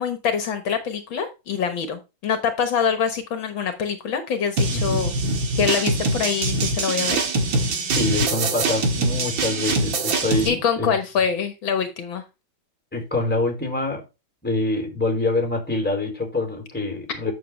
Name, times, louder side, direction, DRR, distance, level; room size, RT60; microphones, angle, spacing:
voice 1, 0.0-5.1 5.6-7.2 10.5-12.2, left 7 dB, 70° left, 2.0 m, -25 dB
sound 1, 4.6-10.5, right 2 dB, 70° right, 2.3 m, -23 dB
voice 2, 7.9-10.9 12.9-14.0 14.4-17.3, left 2 dB, 5° left, 3.8 m, -25 dB
9.4 x 7.2 x 3.1 m
omnidirectional pair, 2.2 m